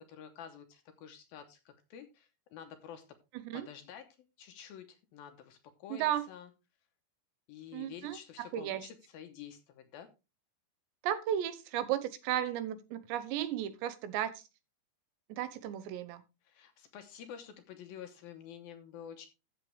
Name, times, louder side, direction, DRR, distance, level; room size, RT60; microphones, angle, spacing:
voice 1, 0.0-3.0 3.5-4.1 4.4-6.5 7.5-10.1 16.5-19.3, left 8 dB, 75° left, 2.4 m, -49 dB
voice 2, 5.9-6.2 7.7-8.9 11.0-14.3 15.3-16.2, right 11 dB, 85° right, 3.1 m, -34 dB
13.0 x 7.4 x 3.3 m
omnidirectional pair, 5.0 m